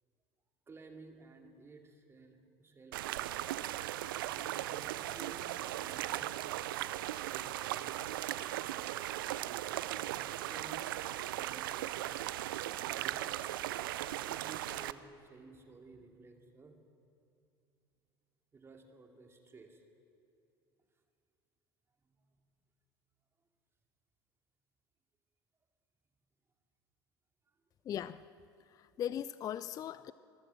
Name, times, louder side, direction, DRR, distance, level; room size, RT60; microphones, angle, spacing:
voice 1, 0.7-3.6 4.2-6.4 7.3-8.8 9.4-10.8 11.3-13.4 14.2-16.8 18.5-19.8 22.0-22.4 27.5-27.6, right 3 dB, 20° right, 4 dB, 2.5 m, -56 dB
sound 1, 2.9-14.9, right 14 dB, 60° right, 0.6 m, -38 dB
voice 2, 27.8-28.2 28.7-30.1, left 10 dB, 30° left, 16 dB, 0.4 m, -39 dB
25.0 x 14.5 x 7.3 m, 2.5 s
figure-of-eight pair, 75°, 13 cm